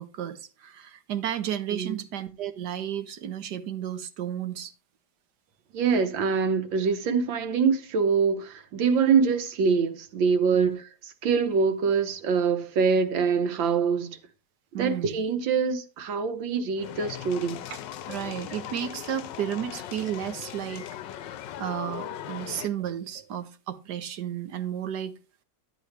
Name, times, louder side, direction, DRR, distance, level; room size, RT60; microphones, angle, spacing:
voice 1, 0.0-4.7 10.5-10.7 14.7-15.2 17.7-17.8 18.1-20.8 21.6-25.1, right 10 dB, 65° right, 1.4 m, -33 dB
voice 2, 1.7-2.0 5.7-10.8 11.2-14.2 14.7-17.6, right 5 dB, 90° right, 1.8 m, -24 dB
sound 1, 16.8-22.7, left 11 dB, 75° left, 1.3 m, -39 dB
11.5 x 7.6 x 3.3 m
omnidirectional pair, 2.0 m